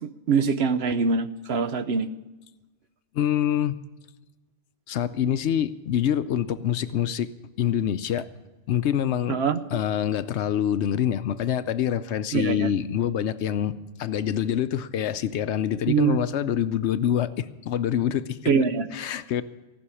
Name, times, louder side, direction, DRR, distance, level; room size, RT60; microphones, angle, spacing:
voice 1, 0.0-2.1 9.3-9.6 12.3-12.7 15.9-16.2 18.5-18.9, right 5 dB, 65° right, 11 dB, 0.9 m, -23 dB
voice 2, 3.1-3.8 4.9-7.3 7.6-8.3 8.7-9.4 9.7-18.5 18.9-19.4, left 10 dB, 70° left, 13 dB, 0.9 m, -26 dB
17.5 x 6.3 x 9.7 m, 1.1 s
omnidirectional pair, 1.2 m